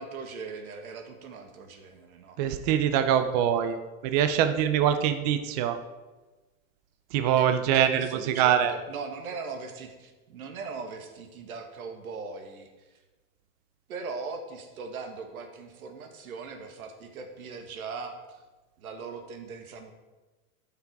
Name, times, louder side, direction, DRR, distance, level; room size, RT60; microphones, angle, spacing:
voice 1, 0.0-2.4 2.7-3.2 7.4-13.0 13.9-18.4 18.8-19.9, right 4 dB, 90° right, 5 dB, 1.7 m, -40 dB
voice 2, 2.4-3.8 4.0-5.8 7.1-8.7, right 9 dB, 30° right, 9 dB, 0.4 m, -24 dB
11.5 x 5.9 x 4.7 m, 1.2 s
supercardioid pair, 155°, 42 cm